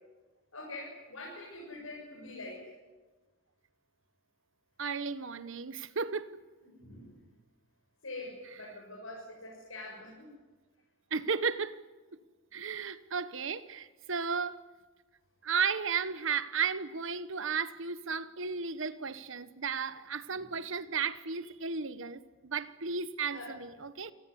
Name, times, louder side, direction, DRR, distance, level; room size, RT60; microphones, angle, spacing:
voice 1, 0.5-2.7 6.8-7.2 8.0-10.3 20.3-20.5 23.3-23.5, left 2 dB, 80° left, 7.2 m, -44 dB
voice 2, 4.8-6.4 11.1-11.8 12.5-14.6 15.4-24.1, right 6 dB, 65° right, 1.2 m, -34 dB
28.0 x 17.5 x 9.8 m
head